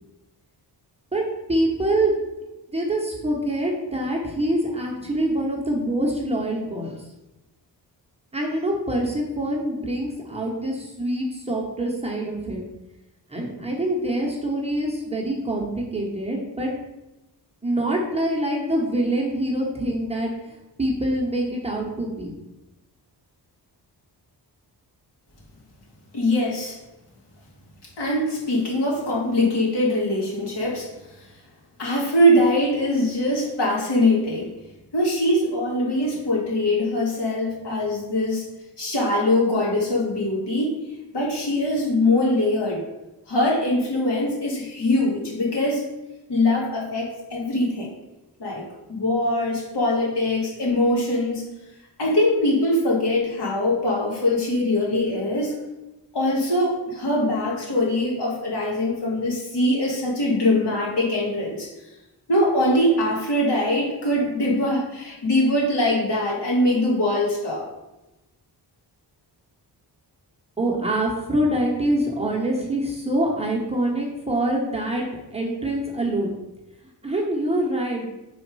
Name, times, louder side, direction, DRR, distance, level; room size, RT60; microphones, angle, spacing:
voice 1, 1.1-2.2 2.7-6.9 8.3-12.6 13.3-16.7 17.6-20.3 20.8-22.3 70.6-75.1 75.3-76.3 77.0-78.1, right 1 dB, 15° right, -2 dB, 1.0 m, -25 dB
voice 2, 26.1-26.8 28.0-30.9 31.2-31.3 31.8-34.5 34.9-40.8 41.1-42.8 43.3-45.9 46.3-47.9 48.4-51.4 52.0-55.5 56.1-61.7 62.3-67.6, left 1 dB, 70° left, -4 dB, 2.1 m, -22 dB
4.9 x 4.2 x 4.7 m, 1.0 s
wide cardioid pair, 145°, 42 cm